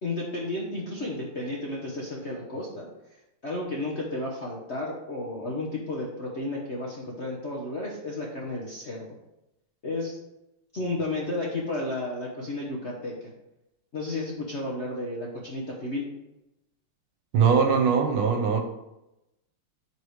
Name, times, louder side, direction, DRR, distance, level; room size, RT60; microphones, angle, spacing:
voice 1, 0.0-2.9 3.4-9.1 9.8-10.2 10.7-13.3 13.9-16.1, left 2 dB, 45° left, -4 dB, 0.9 m, -32 dB
voice 2, 17.3-18.6, right 6 dB, 70° right, 4 dB, 1.7 m, -21 dB
5.5 x 4.7 x 4.9 m, 0.90 s
omnidirectional pair, 2.4 m